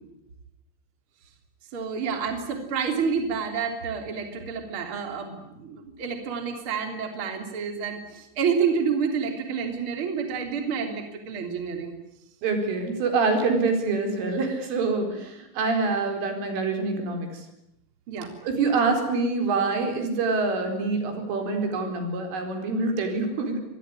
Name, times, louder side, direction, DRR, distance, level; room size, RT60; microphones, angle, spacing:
voice 1, 1.7-11.9 18.1-18.3 21.0-21.2, right 6 dB, 30° right, 5 dB, 3.3 m, -29 dB
voice 2, 12.4-17.3 18.4-23.6, right 3 dB, 75° right, 5 dB, 6.9 m, -25 dB
25.5 x 21.0 x 9.9 m, 0.86 s
omnidirectional pair, 5.6 m